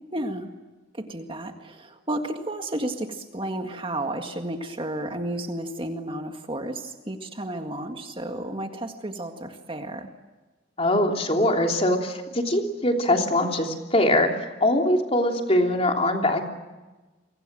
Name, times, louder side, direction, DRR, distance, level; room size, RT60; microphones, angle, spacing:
voice 1, 0.1-0.5 0.9-10.1, right 1 dB, 25° right, 5 dB, 1.9 m, -32 dB
voice 2, 10.8-14.3 14.6-16.5, left 1 dB, 30° left, 2 dB, 3.2 m, -22 dB
29.0 x 24.5 x 7.6 m, 1.2 s
head